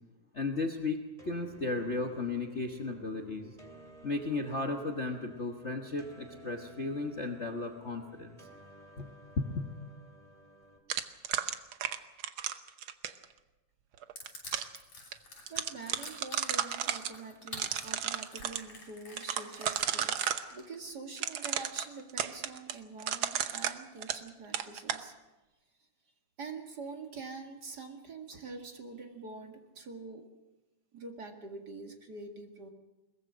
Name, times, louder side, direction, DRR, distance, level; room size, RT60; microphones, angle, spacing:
voice 1, 0.3-1.0 1.2-3.5 4.0-8.4 9.0-9.1 9.4-9.7, left 3 dB, 75° left, 3 dB, 0.6 m, -35 dB
sound 1, 1.2-10.8, right 1 dB, 10° right, 2.3 m, -54 dB
sound 2, 10.9-13.2 14.0-14.8 15.1-15.2 15.5-17.1 17.5-18.6 19.2-20.5 21.2-24.3 24.5-25.0, right 9 dB, 70° right, 1.2 m, -33 dB
Crushing, 14.2-20.9, left 3 dB, 60° left, 7.4 m, -48 dB
voice 2, 15.5-25.1 26.4-30.3 30.9-32.7, right 3 dB, 35° right, 3 dB, 2.2 m, -45 dB
22.0 x 20.0 x 6.3 m, 1.1 s
omnidirectional pair, 3.4 m